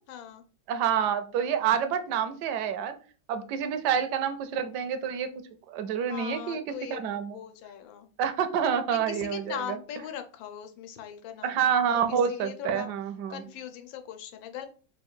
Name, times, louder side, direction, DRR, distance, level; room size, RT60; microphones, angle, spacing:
voice 1, 0.1-0.4 6.1-8.1 8.9-12.9 13.3-14.7, left 9 dB, 90° left, 7 dB, 1.4 m, -40 dB
voice 2, 0.7-2.9 3.3-5.3 5.7-6.6 6.9-7.4 8.2-9.6 11.4-13.4, right 8 dB, 70° right, 9 dB, 1.1 m, -27 dB
3.7 x 2.4 x 4.4 m, 0.39 s
omnidirectional pair, 2.1 m